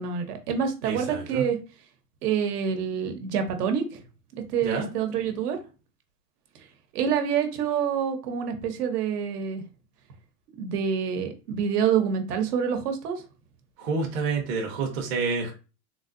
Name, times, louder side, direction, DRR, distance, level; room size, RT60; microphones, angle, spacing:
voice 1, 0.0-1.6 2.2-4.0 4.5-5.6 6.9-9.6 10.6-13.2, right 7 dB, 70° right, 6 dB, 1.0 m, -27 dB
voice 2, 0.8-1.4 4.6-4.9 13.8-15.5, right 4 dB, 25° right, 0 dB, 0.6 m, -28 dB
3.6 x 2.6 x 2.5 m, 0.32 s
supercardioid pair, 150°, 48 cm